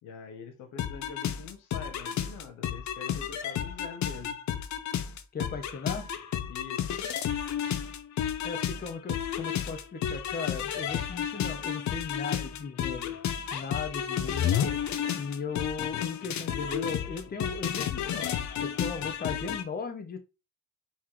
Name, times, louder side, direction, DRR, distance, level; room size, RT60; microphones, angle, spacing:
voice 1, 0.0-4.4 6.5-6.9, left 6 dB, 90° left, 1.1 m, -45 dB
sound 1, 0.8-19.6, left 9 dB, 70° left, 0.7 m, -32 dB
voice 2, 5.3-6.1 8.4-13.1 13.5-14.8 15.1-18.3 18.6-20.2, left 5 dB, 30° left, 0.9 m, -37 dB
4.2 x 3.9 x 3.1 m
cardioid pair, 90°, 30 cm